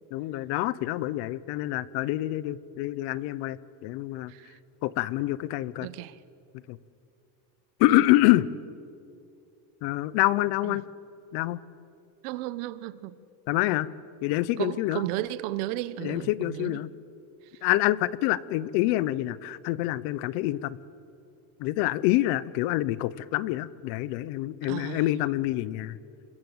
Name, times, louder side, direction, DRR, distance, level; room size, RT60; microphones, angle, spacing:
voice 1, 0.1-4.3 4.8-5.9 6.7-6.8 7.8-8.4 9.8-10.9 11.3-11.6 13.5-13.9 14.2-15.0 16.0-16.9 17.6-20.8 21.6-26.0, left 16 dB, 60° left, 1.0 m, -26 dB
voice 2, 4.3-4.6 5.8-6.2 7.9-8.1 10.6-10.8 12.2-13.2 14.6-16.8 24.7-25.0, right 15 dB, 75° right, 1.2 m, -34 dB
27.5 x 22.5 x 8.1 m
cardioid pair, 170°, 45 cm